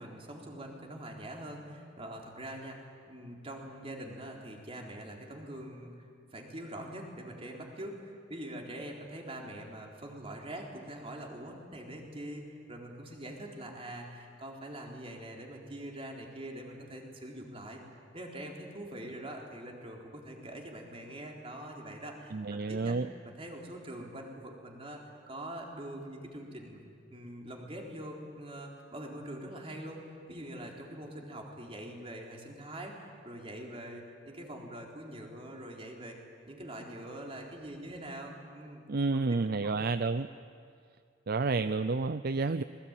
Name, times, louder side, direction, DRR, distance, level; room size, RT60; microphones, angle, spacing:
voice 1, 0.0-5.9 6.3-17.8 18.1-22.9 23.2-26.8 27.1-36.2 36.4-38.8 39.3-39.4 39.6-39.7, right 1 dB, 30° right, 0 dB, 3.9 m, -44 dB
voice 2, 22.3-23.1 38.9-40.3 41.3-42.6, right 3 dB, 55° right, 12 dB, 0.5 m, -30 dB
26.5 x 21.0 x 9.0 m, 2.3 s
head